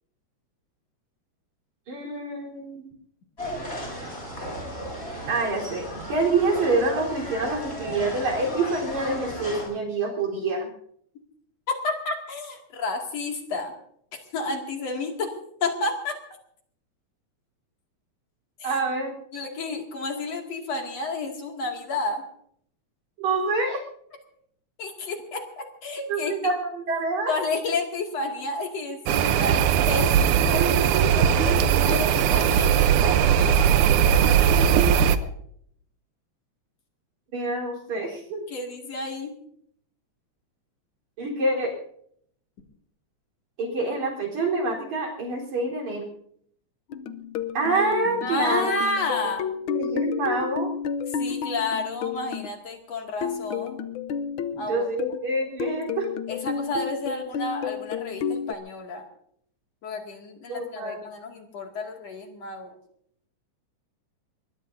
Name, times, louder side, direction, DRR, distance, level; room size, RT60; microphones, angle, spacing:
voice 1, 1.9-2.9 5.3-10.7 18.6-19.1 23.2-23.8 26.1-27.3 37.3-38.4 41.2-41.7 43.6-46.1 47.5-48.7 49.7-50.7 54.5-56.1 60.5-61.0, right 3 dB, 70° right, -1 dB, 5.3 m, -26 dB
sound 1, 3.4-9.6, equal, 20° left, 7.8 m, -35 dB
voice 2, 11.7-13.7 14.1-15.3 15.6-16.2 18.6-18.7 19.3-22.2 24.8-26.5 27.3-35.3 38.5-39.3 48.2-49.5 51.2-53.8 54.6-54.9 56.3-59.0 59.8-62.8, left 3 dB, 60° left, 2 dB, 3.4 m, -31 dB
sound 2, 29.1-35.2, right 8 dB, 85° right, 2.3 m, -19 dB
sound 3, 46.9-52.5 53.2-55.3 55.6-58.5, left 7 dB, 85° left, 1.1 m, -31 dB
23.5 x 21.0 x 2.7 m, 0.66 s
omnidirectional pair, 3.4 m